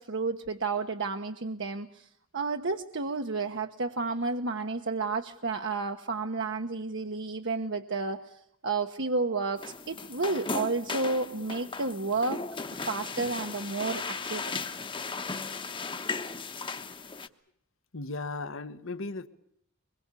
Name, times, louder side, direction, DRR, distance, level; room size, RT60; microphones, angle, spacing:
voice 1, 0.0-2.1 2.3-12.4 12.9-14.4, right 3 dB, 60° right, 5 dB, 1.2 m, -31 dB
sound 1, 9.6-17.3, left 4 dB, 25° left, 1.1 m, -36 dB
voice 2, 17.9-19.3, left 3 dB, 65° left, 14 dB, 1.3 m, -36 dB
24.0 x 22.5 x 8.3 m, 0.70 s
head